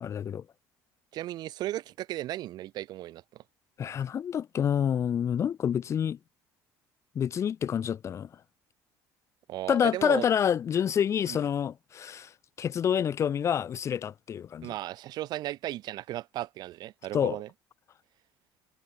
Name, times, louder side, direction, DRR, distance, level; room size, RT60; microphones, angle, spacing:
voice 1, 0.0-0.4 3.8-6.2 7.1-8.3 9.7-12.3 12.6-14.7 17.1-17.4, left 8 dB, 40° left, 0.8 m, -28 dB
voice 2, 1.1-3.4 9.5-10.2 11.3-11.4 14.6-17.5, right 14 dB, 60° right, 1.3 m, -35 dB
cardioid pair, 115°, 8 cm